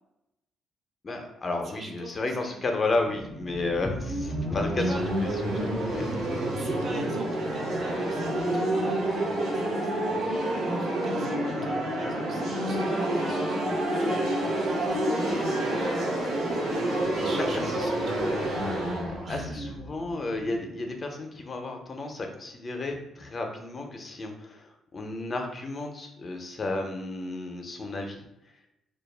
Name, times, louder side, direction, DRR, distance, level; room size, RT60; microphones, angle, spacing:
voice 1, 1.0-5.3 5.5-6.1 17.8-28.2, left 2 dB, 40° left, 3 dB, 0.4 m, -33 dB
voice 2, 1.6-2.6 4.9-5.4 6.5-14.2 14.5-14.9 15.2-16.1 17.1-18.5 19.2-19.6, right 2 dB, 55° right, 3 dB, 0.5 m, -43 dB
sound 1, 2.9-20.7, right 1 dB, 90° right, 0.7 m, -29 dB
2.2 x 2.0 x 3.1 m, 0.85 s
cardioid pair, 90°, 0 cm